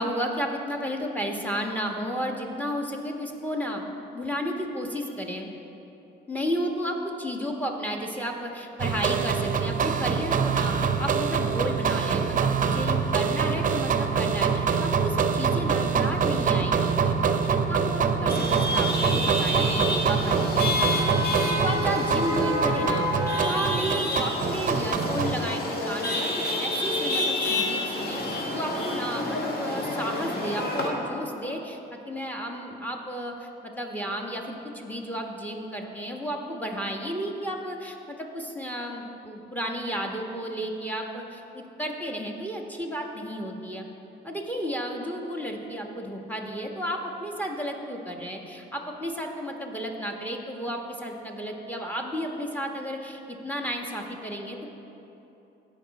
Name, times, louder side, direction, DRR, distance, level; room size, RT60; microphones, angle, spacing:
voice 1, 0.0-3.8 4.1-5.5 6.3-23.1 23.4-31.8 32.1-43.9 44.2-54.7, equal, 10° left, 1 dB, 1.3 m, -33 dB
sound 1, 8.8-25.4, right 6 dB, 40° right, 0.6 m, -25 dB
Chatter / Vehicle horn car horn honking / Traffic noise roadway noise, 18.3-30.9, left 1 dB, 50° left, 1.6 m, -28 dB
16.5 x 5.7 x 4.1 m, 3.0 s
cardioid pair, 90°, 20 cm